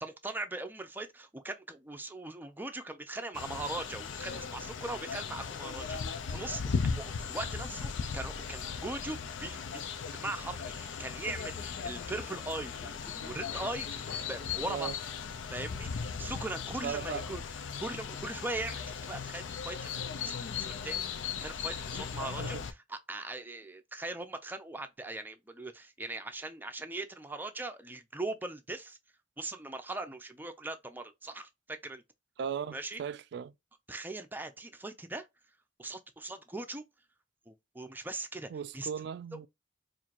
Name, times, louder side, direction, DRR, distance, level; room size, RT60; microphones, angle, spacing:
voice 1, 0.0-9.9 10.1-14.9 15.5-17.4 17.8-21.1 21.4-29.0 29.4-32.0 32.7-33.0 33.9-35.3 35.8-36.8 37.5-38.9, right 2 dB, 10° right, 0.5 m, -40 dB
sound 1, 3.3-22.7, left 6 dB, 90° left, 0.5 m, -37 dB
voice 2, 16.8-17.2 22.4-22.6 32.4-33.5 38.5-39.5, right 7 dB, 65° right, 0.3 m, -37 dB
4.4 x 2.6 x 2.5 m
head